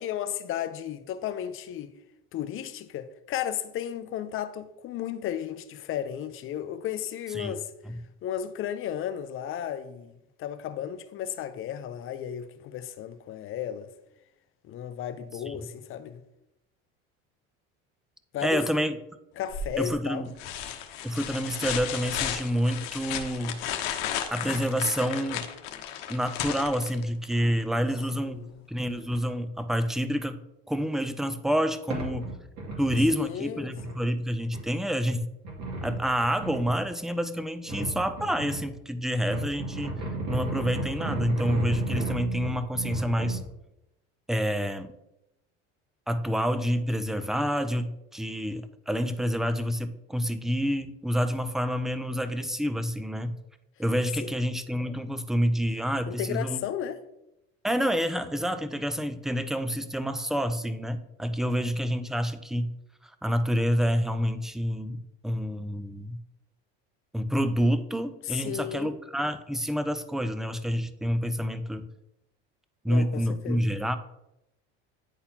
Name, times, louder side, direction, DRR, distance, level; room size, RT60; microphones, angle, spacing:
voice 1, 0.0-1.9 2.3-7.7 8.2-13.9 14.6-16.2 18.3-18.6 19.4-20.2 28.2-28.5 33.1-34.0 54.2-54.3 56.1-57.0 68.2-68.9 72.9-73.7, left 10 dB, 45° left, 0.6 m, -34 dB
voice 2, 18.4-19.0 19.8-20.3 21.0-23.6 24.3-25.5 26.1-28.4 28.7-30.4 30.7-32.3 32.8-35.3 35.8-40.0 40.3-43.4 44.3-44.9 46.1-53.4 53.8-56.6 57.6-62.7 63.0-65.0 65.2-66.2 67.1-71.8 72.8-74.0, equal, ahead, 0.3 m, -28 dB
sound 1, 19.5-19.9 20.4-27.3 29.1-29.2, left 9 dB, 85° left, 0.8 m, -34 dB
sound 2, 31.5-31.6 31.9-33.1 33.6-33.9 34.5-34.6 35.4-36.7 37.6-38.6 39.1-43.4, right 2 dB, 65° right, 2.3 m, -33 dB
9.9 x 4.0 x 2.8 m
supercardioid pair, 115°, 30 cm